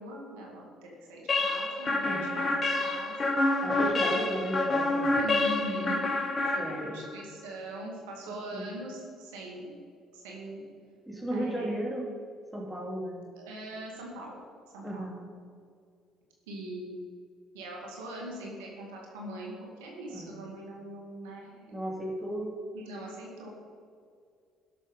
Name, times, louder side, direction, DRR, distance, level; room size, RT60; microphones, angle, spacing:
voice 1, 0.0-3.2 3.8-4.0 5.1-6.0 6.5-9.7 10.1-10.6 11.3-11.8 13.4-14.4 14.7-15.1 16.5-17.0 17.5-21.8 22.7-23.5, right 1 dB, 90° right, -1 dB, 2.4 m, -41 dB
sound 1, 1.3-7.2, left 2 dB, 35° left, 1.5 m, -28 dB
voice 2, 2.0-2.4 3.6-5.1 6.6-7.0 8.3-8.6 11.1-12.1 12.5-13.2 14.8-15.3 20.1-20.4 21.7-22.5, right 1 dB, ahead, -2 dB, 3.0 m, -35 dB
12.5 x 6.6 x 5.5 m, 2.3 s
supercardioid pair, 70°, 0 cm